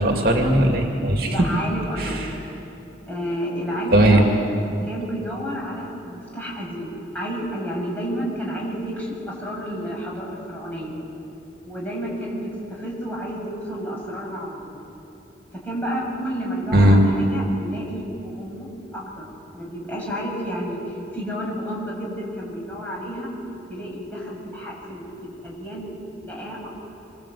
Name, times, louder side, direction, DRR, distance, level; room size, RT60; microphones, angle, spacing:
voice 1, 0.0-1.4 2.0-2.3 3.9-4.2 16.7-17.0, right 1 dB, 55° right, 1 dB, 2.5 m, -17 dB
voice 2, 1.3-2.2 3.0-4.2 4.8-10.9 11.6-14.8 15.5-19.3 19.5-23.3 23.7-25.9 26.2-26.7, equal, 10° left, -4 dB, 7.6 m, -31 dB
26.5 x 25.5 x 8.6 m, 2.8 s
head